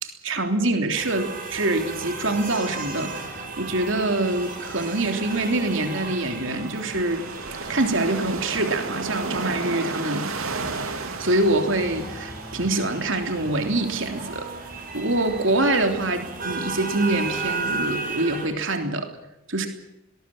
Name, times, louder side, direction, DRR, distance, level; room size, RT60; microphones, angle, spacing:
voice 1, 0.0-7.2 7.7-10.3 11.0-14.5 14.9-19.1 19.5-19.7, right 2 dB, 65° right, 5 dB, 3.3 m, -25 dB
sound 1, 0.9-18.5, right 3 dB, 40° right, 7.9 m, -35 dB
sound 2, 1.5-17.8, right 3 dB, 85° right, 2.6 m, -37 dB
22.0 x 20.5 x 7.4 m, 0.88 s
head